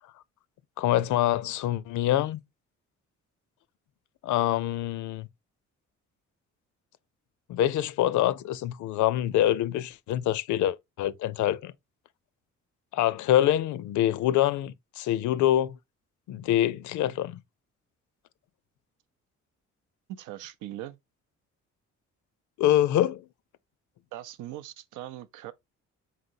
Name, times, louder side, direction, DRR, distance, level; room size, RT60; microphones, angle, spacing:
voice 1, 0.8-2.4 4.2-5.3 7.5-11.7 12.9-15.7 16.3-17.4 22.6-23.2, left 12 dB, 75° left, 0.5 m, -25 dB
voice 2, 20.1-21.0 24.1-25.5, right 13 dB, 85° right, 0.5 m, -40 dB
4.1 x 3.8 x 2.6 m
cardioid pair, 90°, 30 cm